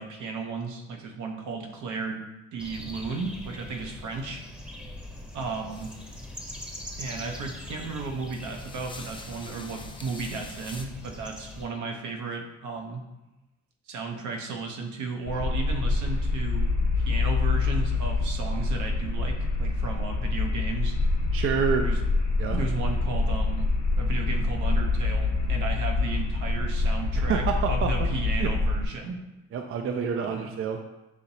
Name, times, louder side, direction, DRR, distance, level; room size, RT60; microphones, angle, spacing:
voice 1, 0.0-2.2 2.5-4.4 5.3-5.9 7.0-13.0 13.9-21.0 21.8-22.0 22.5-23.7 24.0-29.2 30.2-30.5, right 4 dB, 75° right, 2 dB, 0.8 m, -34 dB
sound 1, 2.6-11.7, left 1 dB, 5° right, 0.8 m, -42 dB
sound 2, 5.7-10.9, left 3 dB, 15° left, 0.4 m, -47 dB
sound 3, 15.3-28.8, left 3 dB, 60° left, 1.1 m, -26 dB
voice 2, 21.3-21.9 22.4-22.6 27.1-28.1 28.4-28.5 29.5-30.8, right 6 dB, 45° right, 4 dB, 0.4 m, -28 dB
6.4 x 2.8 x 2.7 m, 1.0 s
cardioid pair, 90°, 30 cm